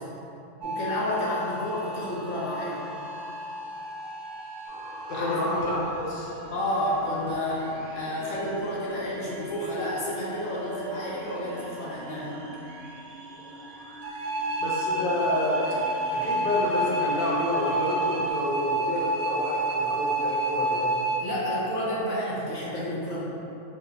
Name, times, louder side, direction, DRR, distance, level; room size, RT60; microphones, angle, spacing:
voice 1, 0.6-2.8 5.1-5.5 6.5-12.4 21.2-23.2, equal, 70° left, -7 dB, 1.2 m, -30 dB
sound 1, 0.6-18.3, left 1 dB, 65° right, 0.9 m, -41 dB
sound 2, 4.6-11.2, left 1 dB, 10° right, 0.5 m, -45 dB
voice 2, 5.1-6.3 14.6-15.6 16.1-20.9, left 1 dB, 50° left, -6 dB, 0.7 m, -29 dB
sound 3, 14.0-21.2, right 1 dB, 90° right, 0.4 m, -28 dB
4.1 x 2.1 x 3.9 m, 2.9 s
omnidirectional pair, 1.5 m